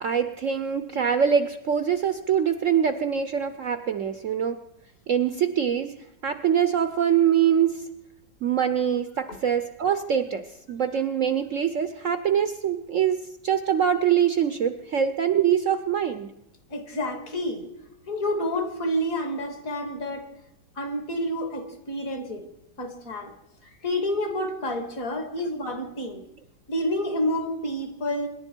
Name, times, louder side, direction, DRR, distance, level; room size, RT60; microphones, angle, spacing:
voice 1, 0.0-4.6 5.1-6.0 6.2-7.8 8.4-16.3, right 8 dB, 60° right, 10 dB, 0.9 m, -24 dB
voice 2, 16.7-17.7 18.1-20.3 20.8-22.4 22.8-23.3 23.8-26.2 26.7-28.3, left 1 dB, 50° left, 7 dB, 2.2 m, -29 dB
26.0 x 11.0 x 4.5 m, 0.85 s
omnidirectional pair, 1.9 m